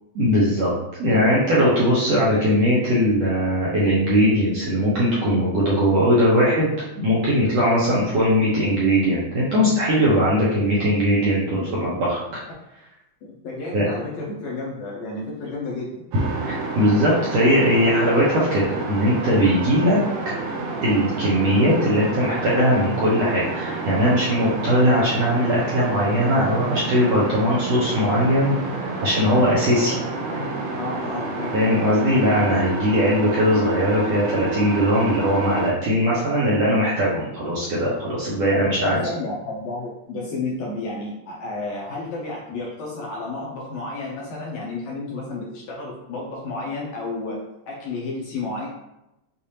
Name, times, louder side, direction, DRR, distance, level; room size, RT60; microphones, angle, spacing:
voice 1, 0.2-0.7 1.0-12.4 13.7-13.9 16.5-20.0 20.8-29.9 31.5-39.0, equal, 70° right, -7 dB, 1.6 m, -20 dB
voice 2, 13.2-16.0 29.8-30.0 30.3-31.6 38.5-48.7, left 2 dB, 75° left, -4 dB, 1.8 m, -31 dB
sound 1, 16.1-35.7, right 3 dB, 85° right, 1.4 m, -29 dB
6.6 x 2.6 x 2.8 m, 0.90 s
omnidirectional pair, 3.9 m